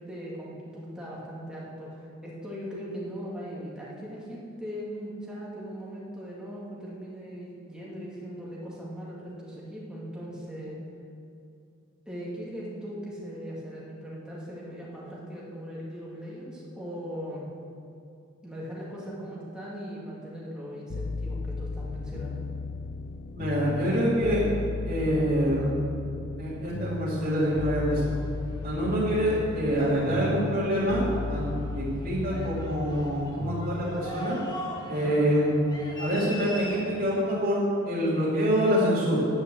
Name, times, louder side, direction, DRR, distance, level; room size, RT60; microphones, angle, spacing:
voice 1, 0.0-10.8 12.1-17.5 18.4-22.4 34.9-35.2, equal, 5° right, -7 dB, 2.3 m, -39 dB
sound 1, 20.9-34.2, left 4 dB, 45° left, 0.3 m, -35 dB
voice 2, 23.3-24.4 24.8-25.8 26.4-28.1 28.6-34.4 34.9-35.7 36.0-39.3, equal, 45° right, -8 dB, 2.7 m, -26 dB
sound 2, 27.1-37.1, left 1 dB, 20° left, 2.0 m, -42 dB
9.6 x 9.4 x 7.9 m, 2.5 s
head